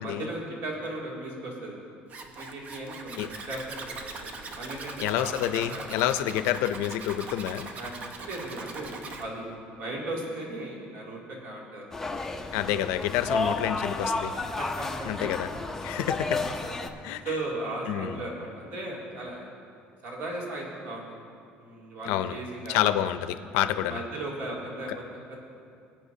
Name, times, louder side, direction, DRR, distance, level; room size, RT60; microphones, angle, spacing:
voice 1, 0.0-1.7 2.4-5.8 7.8-7.9 8.2-12.0 13.2-13.4 14.3-15.3 16.6-16.9 17.3-19.5 20.0-21.2 21.6-22.8 23.7-25.4, right 2 dB, 60° right, -3 dB, 2.5 m, -37 dB
Zipper (clothing), 2.1-9.2, right 3 dB, 40° right, 0.9 m, -41 dB
voice 2, 5.0-7.7 12.5-14.3 15.0-15.5 15.8-16.5 17.0-17.2 17.9-18.2 22.1-22.3 22.7-24.0, left 12 dB, 90° left, 11 dB, 0.4 m, -28 dB
sound 1, 11.9-16.9, left 3 dB, 10° left, 0.5 m, -31 dB
20.0 x 8.7 x 2.7 m, 2.4 s
cardioid pair, 150°, 4 cm